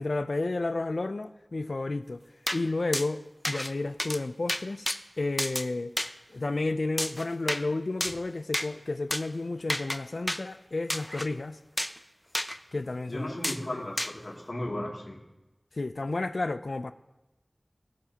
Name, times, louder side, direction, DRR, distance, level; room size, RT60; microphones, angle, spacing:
voice 1, 0.0-2.2 2.5-4.9 5.2-6.0 6.3-11.6 12.7-13.9 15.8-16.9, left 2 dB, 85° left, 0.4 m, -31 dB
sound 1, 2.5-2.6 2.9-3.1 3.4-3.7 4.0-4.2 4.5-5.0 5.4-5.7 6.0-6.1 7.0-7.6 8.0-8.2 8.5-8.7 9.1-9.2 9.7-10.0 10.3-10.4 10.9-11.3 11.8-12.0 12.3-12.6 13.4-13.6 14.0-14.1, left 1 dB, 15° left, 0.5 m, -30 dB
voice 2, 13.1-15.2, left 1 dB, 65° left, 2.5 m, -35 dB
19.5 x 7.2 x 2.9 m
wide cardioid pair, 50°, 0 cm